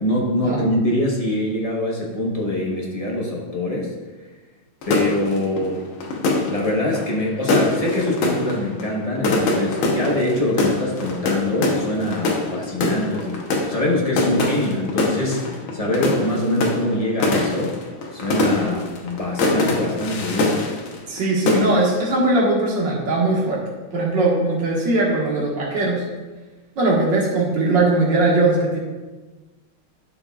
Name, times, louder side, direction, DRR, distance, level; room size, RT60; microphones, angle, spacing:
voice 1, 0.0-3.9 4.9-5.9 6.5-17.7 18.1-20.5, left 1 dB, 25° left, -2 dB, 0.8 m, -24 dB
sound 1, 4.8-21.2 21.5-22.0, left 2 dB, 75° left, 1.9 m, -23 dB
voice 2, 21.1-23.6 23.9-26.0 26.8-28.8, right 2 dB, 60° right, -4 dB, 2.3 m, -20 dB
11.0 x 6.4 x 2.4 m, 1.2 s
omnidirectional pair, 2.3 m